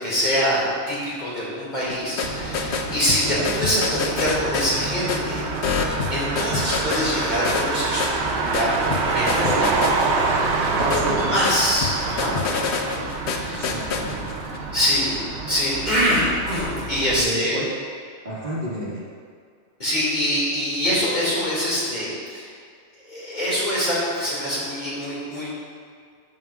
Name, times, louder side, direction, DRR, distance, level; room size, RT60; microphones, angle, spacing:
voice 1, 0.0-5.5 5.8-8.7 9.0-9.8 10.8-12.4 12.8-13.1 13.4-13.8 14.5-17.6 19.8-22.5 23.0-25.5, equal, 45° left, -8 dB, 2.2 m, -24 dB
sound 1, 1.8-14.6, left 5 dB, 80° left, 0.9 m, -28 dB
Motor vehicle (road), 2.2-17.2, right 4 dB, 85° right, 0.9 m, -27 dB
voice 2, 9.2-10.2 10.7-11.3 13.6-14.2 17.1-17.7 18.2-19.0, equal, 50° right, -8 dB, 1.8 m, -32 dB
12.5 x 5.5 x 2.3 m, 2.1 s
omnidirectional pair, 1.1 m